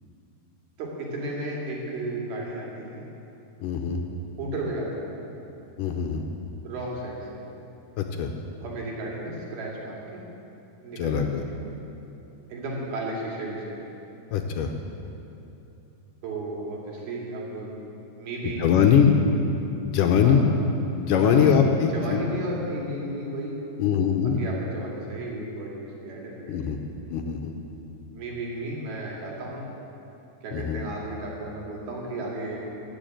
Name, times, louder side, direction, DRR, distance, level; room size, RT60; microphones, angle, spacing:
voice 1, 0.8-3.0 4.4-5.2 6.6-7.4 8.6-10.2 10.8-11.6 12.5-13.8 16.2-17.7 18.2-19.0 20.2-20.4 21.2-23.6 24.4-26.8 28.1-29.7 30.4-32.6, right 2 dB, 85° right, -3 dB, 4.1 m, -34 dB
voice 2, 3.6-4.0 5.8-6.2 8.0-8.3 11.0-11.4 14.3-14.7 18.6-19.1 19.8-20.4 20.9-22.2 23.8-24.4 26.5-26.8 27.1-27.5 30.5-30.8, left 7 dB, 75° left, 4 dB, 2.1 m, -22 dB
14.0 x 7.2 x 9.0 m, 2.9 s
omnidirectional pair, 4.2 m